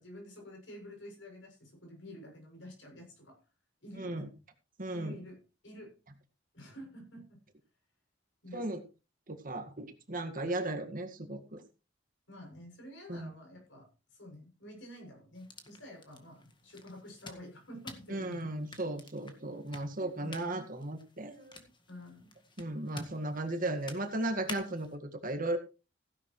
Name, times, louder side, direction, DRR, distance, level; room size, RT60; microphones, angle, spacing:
voice 1, 0.0-3.4 3.8-4.3 4.9-6.0 6.5-7.4 8.4-8.7 12.3-18.5 20.2-20.3 21.9-22.4, equal, 80° left, 2 dB, 7.2 m, -49 dB
voice 2, 4.0-4.3 4.8-5.2 8.5-8.8 9.3-11.6 13.1-13.3 18.1-21.7 22.6-25.6, right 1 dB, 50° right, 6 dB, 1.9 m, -36 dB
sound 1, 15.3-25.0, left 3 dB, 25° left, 1.9 m, -51 dB
16.0 x 11.0 x 3.2 m, 0.31 s
head